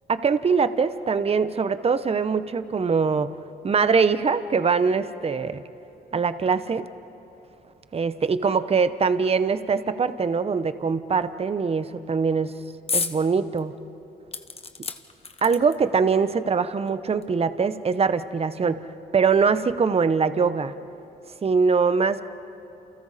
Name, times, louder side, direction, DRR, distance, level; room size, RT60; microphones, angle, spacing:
voice 1, 0.1-3.3 3.6-5.6 6.1-6.9 7.9-12.5 12.9-13.7 15.4-18.8 19.1-20.7 21.4-22.2, right 5 dB, 35° right, 12 dB, 0.9 m, -22 dB
sound 1, 12.9-13.2 13.6-13.7 14.3-16.0 16.9-17.0 17.2-17.3, left 5 dB, 35° left, 1.3 m, -30 dB
29.0 x 28.5 x 4.2 m, 3.0 s
cardioid pair, 75°, 17 cm